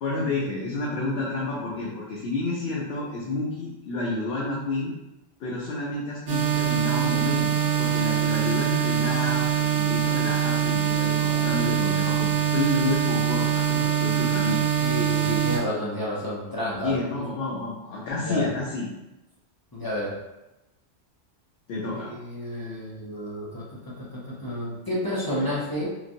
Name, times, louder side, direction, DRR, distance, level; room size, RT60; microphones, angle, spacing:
voice 1, 0.0-4.9 5.4-14.7 16.8-18.9 21.7-22.1 25.3-25.5, left 2 dB, 65° left, -4 dB, 0.8 m, -30 dB
sound 1, 6.3-15.6, right 9 dB, 60° right, 0.8 m, -24 dB
voice 2, 11.3-12.4 14.8-17.2 18.3-18.5 19.7-20.2 22.1-25.9, equal, 30° left, -7 dB, 0.4 m, -31 dB
2.9 x 2.6 x 2.5 m, 0.97 s
omnidirectional pair, 1.3 m